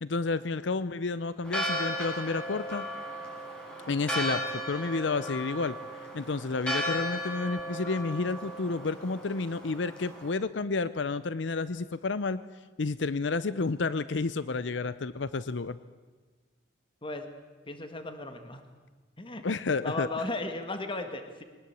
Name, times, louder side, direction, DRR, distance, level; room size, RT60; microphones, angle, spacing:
voice 1, 0.0-2.9 3.9-4.4 4.7-5.8 6.1-12.4 12.8-15.8 19.4-20.1, left 3 dB, 75° left, 15 dB, 0.7 m, -30 dB
Church bell, 1.4-10.3, equal, 5° left, 6.8 m, -35 dB
voice 2, 17.7-18.6 19.2-19.4 19.8-21.4, left 2 dB, 30° left, 7 dB, 1.8 m, -35 dB
23.0 x 19.5 x 8.2 m, 1.4 s
head